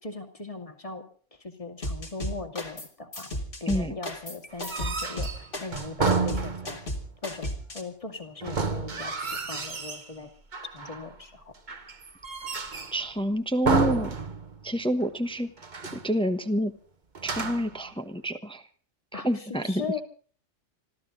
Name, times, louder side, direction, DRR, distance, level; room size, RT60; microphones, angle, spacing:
voice 1, 0.0-1.0 1.3-3.3 3.6-6.8 7.2-10.3 10.6-11.5 19.1-20.0, left 4 dB, 25° left, 5 dB, 2.6 m, -39 dB
sound 1, 1.8-2.9 3.1-7.8, equal, 45° left, 3.0 m, -34 dB
sound 2, 4.5-7.0 8.4-10.1 10.5-11.1 11.7-13.1 13.6-14.7 15.0-15.1 15.6-16.1 17.1-17.8, right 4 dB, 40° right, 1.4 m, -30 dB
voice 2, 12.9-14.1 14.6-15.5 15.9-16.7 17.2-18.6 19.1-20.0, equal, 5° left, 8 dB, 1.1 m, -28 dB
26.0 x 14.5 x 3.9 m, 0.44 s
omnidirectional pair, 1.3 m